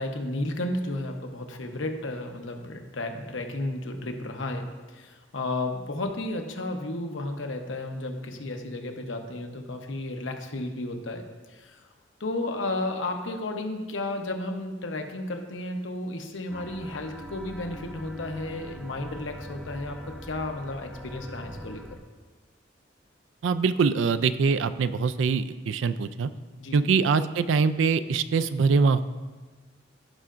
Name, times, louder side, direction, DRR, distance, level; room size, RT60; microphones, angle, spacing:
voice 1, 0.0-11.8 12.2-22.0 26.6-26.8, left 2 dB, 85° left, 4 dB, 0.9 m, -33 dB
sound 1, 16.5-22.0, equal, 5° right, 0.6 m, -43 dB
voice 2, 23.4-26.3 26.7-29.0, right 5 dB, 85° right, 13 dB, 0.4 m, -23 dB
16.5 x 5.6 x 2.5 m, 1.3 s
head